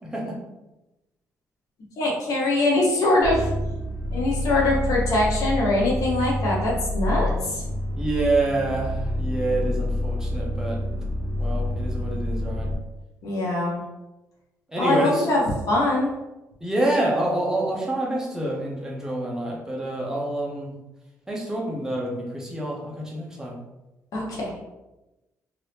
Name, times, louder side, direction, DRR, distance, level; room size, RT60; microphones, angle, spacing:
voice 1, 0.0-0.4 7.9-10.8 11.4-12.7 14.7-15.3 16.6-20.7 21.3-23.6, right 2 dB, 10° right, -2 dB, 0.8 m, -27 dB
voice 2, 2.0-3.5 4.1-7.6 13.2-13.8 14.8-16.1 24.1-24.4, left 2 dB, 75° left, -3 dB, 1.1 m, -23 dB
sound 1, 3.2-12.8, left 1 dB, 20° left, 1.4 m, -28 dB
2.9 x 2.7 x 3.3 m, 1.0 s
cardioid pair, 115°, 6 cm